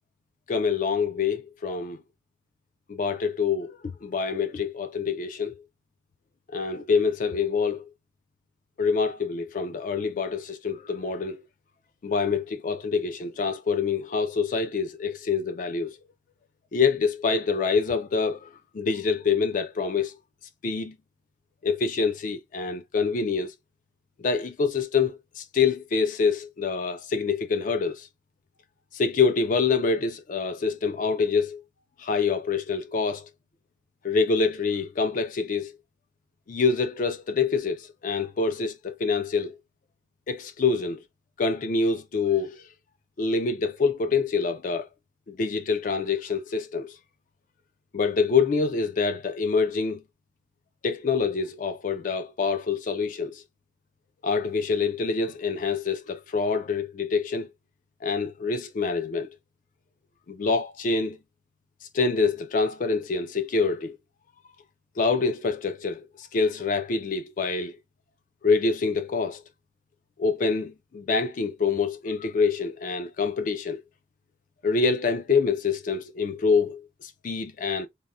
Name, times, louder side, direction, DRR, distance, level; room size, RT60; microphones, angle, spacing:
voice 1, 0.5-2.0 2.9-5.6 6.5-7.9 8.8-11.4 12.0-15.9 16.7-18.5 18.7-20.1 20.6-21.0 21.6-23.5 24.2-28.1 28.9-31.6 32.0-33.3 34.0-35.7 36.5-39.6 40.3-41.0 41.4-42.7 43.2-44.9 45.3-46.9 47.9-50.0 50.8-53.4 54.2-57.5 58.0-59.3 60.3-61.2 61.9-64.0 65.0-67.7 68.4-69.4 70.2-73.8 74.6-77.9, left 4 dB, 40° left, 0.3 m, -26 dB
3.5 x 2.0 x 2.4 m
head